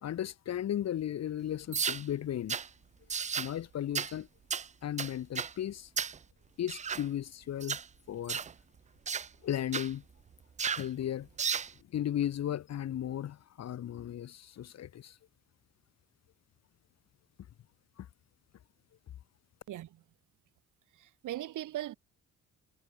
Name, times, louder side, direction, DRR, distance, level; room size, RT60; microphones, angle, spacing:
voice 1, 0.0-2.6 3.4-4.3 4.8-5.9 6.6-7.8 8.1-8.4 9.4-10.0 10.8-11.3 11.9-15.2 18.0-18.1, left 11 dB, 60° left, 1.2 m, -35 dB
sound 1, 1.7-2.0 2.5-2.7 3.1-3.5 3.9-4.1 4.5-4.7 5.0-5.5 6.0-6.2 6.7-7.0 7.6-7.8 8.3-8.5 9.1-9.3 9.7-9.9 10.6-10.9 11.4-11.7, right 6 dB, 25° right, 0.4 m, -33 dB
voice 2, 19.7-20.0 20.9-21.9, right 13 dB, 80° right, 3.6 m, -39 dB
cardioid pair, 90°, 30 cm